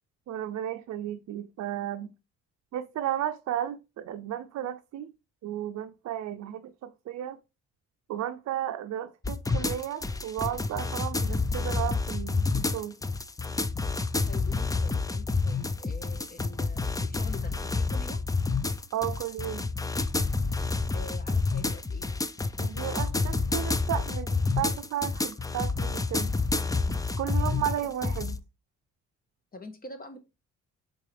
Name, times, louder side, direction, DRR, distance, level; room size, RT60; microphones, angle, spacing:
voice 1, 0.3-2.1 2.7-5.1 5.4-7.4 8.1-13.0 18.9-19.7 22.6-26.3 27.2-28.4, right 11 dB, 65° right, 0.5 m, -34 dB
sound 1, 9.2-28.4, left 3 dB, 10° left, 0.5 m, -29 dB
voice 2, 14.3-18.2 20.9-22.1 27.4-27.6 29.5-30.2, left 2 dB, 30° left, 1.4 m, -45 dB
8.0 x 3.8 x 3.4 m
cardioid pair, 90°, 30 cm